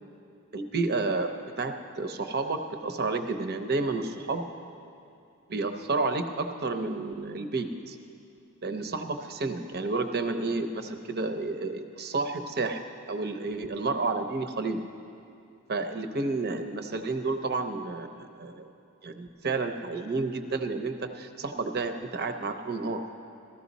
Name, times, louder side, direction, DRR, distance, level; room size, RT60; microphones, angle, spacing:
voice 1, 0.5-1.3 1.6-4.4 5.5-8.0 8.6-12.8 13.1-14.8 15.7-18.7 19.0-23.0, right 3 dB, 45° right, 7 dB, 0.7 m, -30 dB
14.5 x 14.0 x 4.1 m, 2.6 s
head